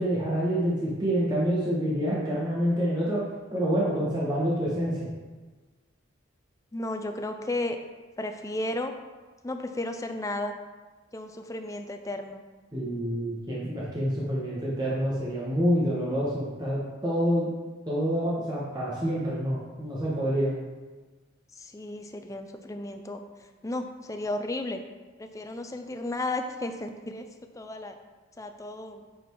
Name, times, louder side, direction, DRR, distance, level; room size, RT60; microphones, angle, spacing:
voice 1, 0.0-3.2 3.5-5.1 12.7-17.5 17.9-20.5, equal, 20° right, -7 dB, 1.3 m, -27 dB
voice 2, 6.7-7.8 8.2-8.9 9.4-10.6 11.1-12.4 21.5-23.2 23.6-24.8 25.2-27.3 27.5-28.0 28.4-29.0, left 2 dB, 15° left, 6 dB, 0.4 m, -33 dB
8.3 x 4.3 x 4.6 m, 1.3 s
head